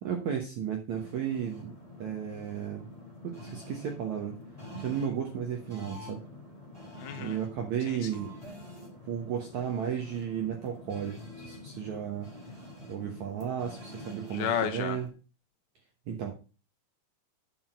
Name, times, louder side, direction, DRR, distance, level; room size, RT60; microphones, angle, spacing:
voice 1, 0.0-1.7 2.0-2.9 3.2-4.4 4.7-6.2 7.2-8.3 9.1-12.3 12.8-15.1 16.1-16.3, right 8 dB, 70° right, 2 dB, 1.8 m, -34 dB
sound 1, 0.9-15.1, left 1 dB, 10° right, 2.4 m, -47 dB
voice 2, 7.0-7.4 7.9-8.1 14.3-15.0, left 9 dB, 80° left, 6 dB, 2.3 m, -32 dB
8.6 x 6.1 x 5.3 m, 0.34 s
omnidirectional pair, 4.8 m